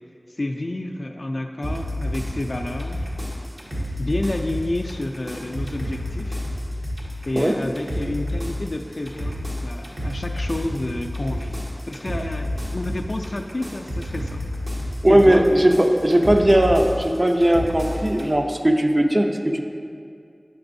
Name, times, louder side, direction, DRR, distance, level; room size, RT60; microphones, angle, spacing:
voice 1, 0.4-3.0 4.0-6.4 7.3-14.4 15.1-15.5, left 1 dB, 60° left, 3 dB, 0.3 m, -29 dB
sound 1, 1.6-18.3, left 1 dB, 60° right, 1.2 m, -30 dB
voice 2, 15.0-19.7, right 1 dB, 35° right, 4 dB, 0.5 m, -18 dB
8.6 x 5.9 x 2.6 m, 2.3 s
wide cardioid pair, 45°, 0 cm